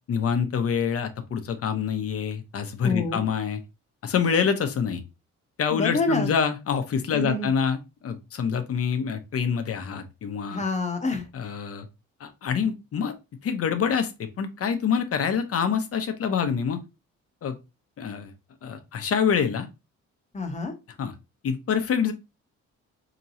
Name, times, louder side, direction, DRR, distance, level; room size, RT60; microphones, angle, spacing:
voice 1, 0.1-3.6 4.0-5.0 5.6-10.6 11.3-11.9 12.2-13.1 13.4-16.8 17.4-17.6 18.0-18.3 18.6-19.7 21.0-21.1 21.4-22.1, left 7 dB, 50° left, 0.8 m, -26 dB
voice 2, 2.8-3.2 5.7-6.3 7.1-7.5 10.5-11.3 20.3-20.7, left 3 dB, 25° left, 1.0 m, -27 dB
4.4 x 2.9 x 2.6 m
cardioid pair, 90°, 30 cm